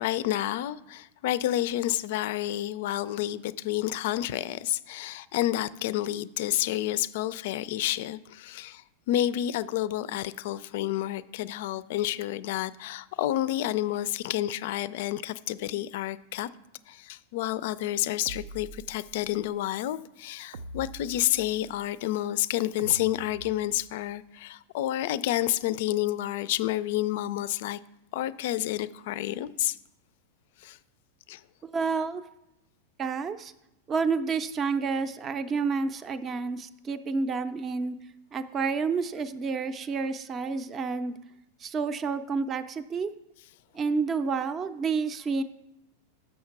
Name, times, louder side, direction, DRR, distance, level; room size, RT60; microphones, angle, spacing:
voice 1, 0.0-16.5 16.9-27.8 28.1-29.8 30.6-30.8 31.3-31.4, left 14 dB, 65° left, 0.3 m, -29 dB
sound 1, 18.3-19.3 20.5-21.8 22.8-24.0, right 3 dB, 80° right, 0.4 m, -44 dB
voice 2, 31.6-32.2 33.0-33.5 33.9-38.0 38.3-41.2 41.6-43.1 43.7-45.4, right 4 dB, 25° right, 0.5 m, -29 dB
6.5 x 6.3 x 5.9 m
supercardioid pair, 135°, 0 cm